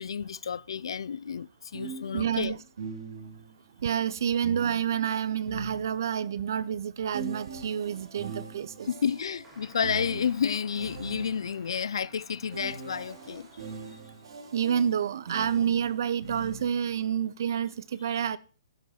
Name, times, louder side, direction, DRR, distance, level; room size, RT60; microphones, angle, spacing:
voice 1, 0.0-2.6 8.9-13.5, left 7 dB, 70° left, 0.3 m, -31 dB
sound 1, 0.7-0.9 1.7-3.5 4.4-6.3 7.1-11.6 12.5-17.0, right 4 dB, 60° right, 2.3 m, -41 dB
voice 2, 2.1-2.6 3.8-8.9 14.5-18.4, right 8 dB, 45° right, 0.5 m, -28 dB
sound 2, 9.4-14.5 15.2-15.7, right 2 dB, 10° right, 1.8 m, -56 dB
11.0 x 5.2 x 5.5 m
hypercardioid pair, 180°, 3 cm